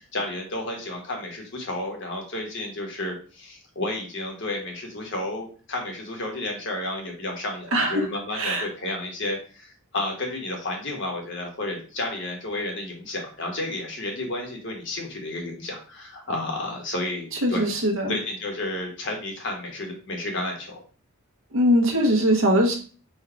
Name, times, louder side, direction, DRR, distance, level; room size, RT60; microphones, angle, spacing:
voice 1, 0.1-17.7 18.1-20.8, left 2 dB, 55° left, 1 dB, 1.3 m, -31 dB
voice 2, 7.7-8.1 8.3-8.7 17.4-18.1 21.5-22.8, equal, 60° right, 0 dB, 1.1 m, -21 dB
4.6 x 2.4 x 4.5 m, 0.39 s
head